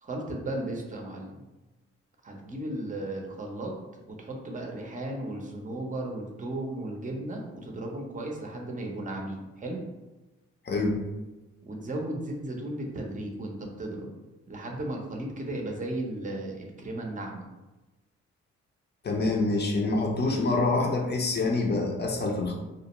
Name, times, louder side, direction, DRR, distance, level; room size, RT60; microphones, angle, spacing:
voice 1, 0.0-1.4 2.2-3.7 4.1-9.8 11.7-14.1 14.5-17.5, right 1 dB, 25° right, 1 dB, 0.6 m, -35 dB
voice 2, 10.7-11.0 19.0-22.5, left 2 dB, 35° left, 1 dB, 0.6 m, -26 dB
2.3 x 2.1 x 3.0 m, 1.1 s
supercardioid pair, 55°, 29 cm